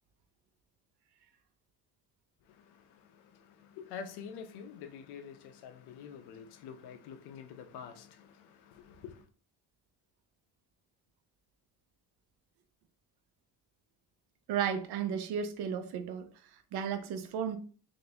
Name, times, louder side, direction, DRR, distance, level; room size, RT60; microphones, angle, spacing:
voice 1, 2.5-9.3, left 7 dB, 85° left, 0.7 m, -47 dB
voice 2, 14.5-17.6, right 8 dB, 80° right, 0.7 m, -34 dB
3.7 x 2.6 x 3.4 m
cardioid pair, 130°, 38 cm